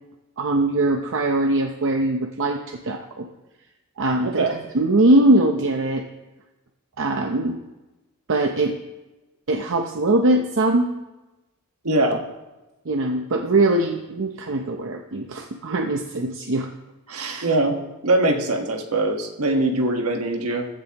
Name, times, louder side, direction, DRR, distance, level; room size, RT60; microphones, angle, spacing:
voice 1, 0.4-3.3 4.0-6.0 7.0-7.6 8.3-8.8 9.5-10.9 12.1-12.2 12.9-16.7, right 2 dB, 60° right, 4 dB, 0.8 m, -21 dB
voice 2, 17.1-20.7, right 2 dB, 75° right, 4 dB, 1.4 m, -22 dB
15.0 x 12.0 x 3.0 m, 1.1 s
head